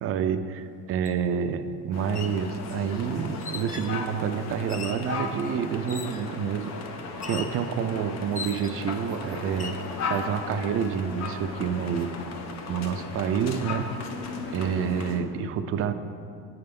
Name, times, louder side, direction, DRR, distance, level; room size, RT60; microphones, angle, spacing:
voice 1, 0.0-6.7 7.2-9.8 10.1-12.1 12.7-14.0 14.5-15.9, right 7 dB, 45° right, 10 dB, 0.4 m, -28 dB
sound 1, 1.0-1.2 2.0-2.4 3.4-4.0 4.7-5.1 5.9-6.3 7.2-7.6 8.3-8.9 9.5-9.8, left 5 dB, 25° left, 0.4 m, -39 dB
sound 2, 1.9-15.2, left 4 dB, 55° left, 0.8 m, -36 dB
8.7 x 3.4 x 5.3 m, 2.5 s
cardioid pair, 105°, 31 cm